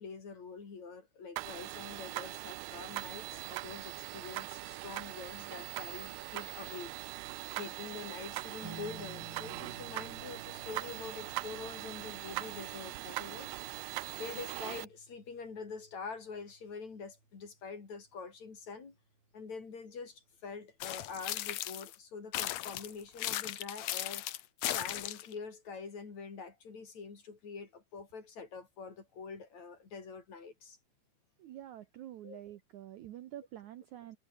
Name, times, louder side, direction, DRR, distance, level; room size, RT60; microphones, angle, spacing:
voice 1, 0.0-6.9 7.6-13.5 14.2-19.0 19.3-24.2 24.7-30.8 32.2-32.4, left 5 dB, 45° left, 5.2 m, -45 dB
sound 1, 1.4-14.9, right 20 dB, 90° right, 2.6 m, -41 dB
sound 2, 8.6-19.4, right 3 dB, 30° right, 5.3 m, -55 dB
sound 3, 20.8-22.0 22.3-25.3, left 14 dB, 80° left, 1.5 m, -37 dB
voice 2, 31.4-34.2, right 12 dB, 70° right, 2.0 m, -47 dB
omnidirectional pair, 4.4 m